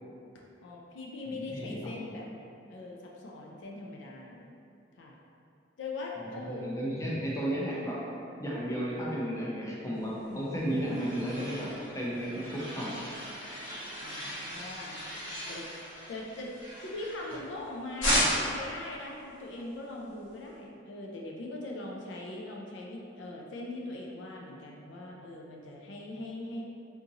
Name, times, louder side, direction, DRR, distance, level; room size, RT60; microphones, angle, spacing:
voice 1, 0.6-2.3 2.7-4.5 5.0-5.2 5.8-6.7 10.3-11.0 14.0-15.0 15.5-15.7 16.1-16.5 16.8-18.2 18.5-26.6, left 2 dB, 70° left, -2 dB, 0.4 m, -41 dB
voice 2, 1.2-1.8 6.2-8.0 8.4-13.1, equal, 15° left, -6 dB, 0.5 m, -34 dB
sound 1, 10.3-17.6 18.0-18.7, equal, 85° left, 1.2 m, -35 dB
3.6 x 2.6 x 2.8 m, 2.7 s
head